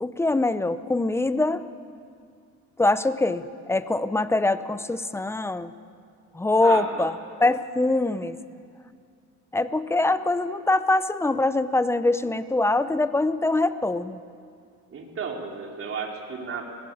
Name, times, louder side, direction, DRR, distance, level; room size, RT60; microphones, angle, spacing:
voice 1, 0.0-1.6 2.8-5.7 6.3-7.1 7.4-8.4 9.5-14.2, left 2 dB, 10° left, 13 dB, 0.6 m, -23 dB
voice 2, 6.6-7.1 14.9-16.6, right 5 dB, 45° right, 1 dB, 3.2 m, -33 dB
21.5 x 18.0 x 8.6 m, 2.3 s
cardioid pair, 140°, 31 cm